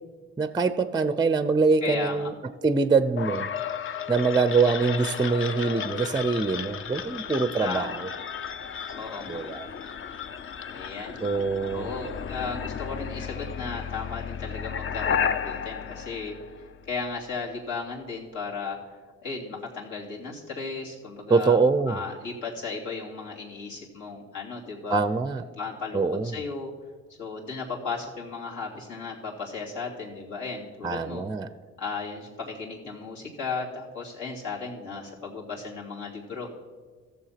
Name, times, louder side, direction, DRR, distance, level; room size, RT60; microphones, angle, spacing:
voice 1, 0.4-2.3 2.6-3.5 4.1-8.0 9.3-9.7 11.2-11.9 21.3-22.0 24.9-25.4 25.9-26.4 30.8-31.5, right 4 dB, 15° right, 13 dB, 0.5 m, -24 dB
voice 2, 1.8-2.3 7.6-8.0 8.9-9.4 10.7-11.1 11.7-16.3 16.9-18.8 19.2-21.6 21.9-25.0 25.6-26.7 27.2-31.2 31.8-36.5, left 4 dB, 75° left, -4 dB, 2.9 m, -35 dB
sound 1, 3.2-17.0, left 7 dB, 45° left, 0.6 m, -33 dB
14.5 x 7.0 x 5.8 m, 1.5 s
cardioid pair, 90°, 30 cm